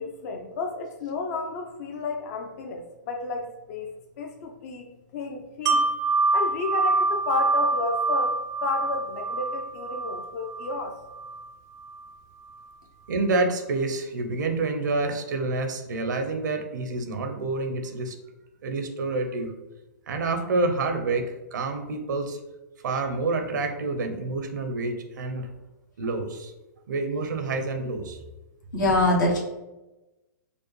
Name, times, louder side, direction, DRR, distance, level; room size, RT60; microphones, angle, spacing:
voice 1, 0.0-3.9 4.2-4.9 5.1-5.9 6.3-11.0, left 4 dB, 50° left, 3 dB, 0.5 m, -32 dB
Wind chime, 5.7-11.5 11.9-12.0, right 3 dB, 30° right, 0.3 m, -26 dB
voice 2, 13.1-18.2 18.6-19.5 20.1-22.4 22.8-25.5 26.0-26.5 26.9-28.2, right 3 dB, 80° right, 6 dB, 0.6 m, -28 dB
voice 3, 28.7-29.4, left 1 dB, 85° left, -2 dB, 1.1 m, -21 dB
5.2 x 2.1 x 3.1 m, 1.0 s
hypercardioid pair, 135°, 10 cm